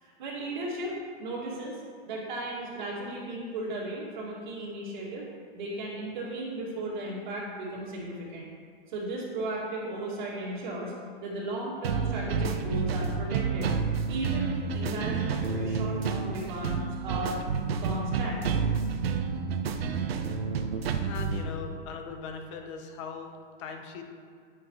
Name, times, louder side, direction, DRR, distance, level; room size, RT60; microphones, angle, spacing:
voice 1, 0.0-1.8 2.1-5.3 5.5-8.5 8.9-10.9 11.2-13.7 14.1-17.4 17.8-18.4, right 1 dB, 55° right, -5 dB, 2.2 m, -35 dB
sound 1, 11.8-21.4, right 5 dB, 90° right, 0.9 m, -29 dB
voice 2, 21.1-24.0, left 5 dB, 30° left, 4 dB, 0.9 m, -40 dB
10.5 x 9.4 x 3.1 m, 2.1 s
hypercardioid pair, 165°, 29 cm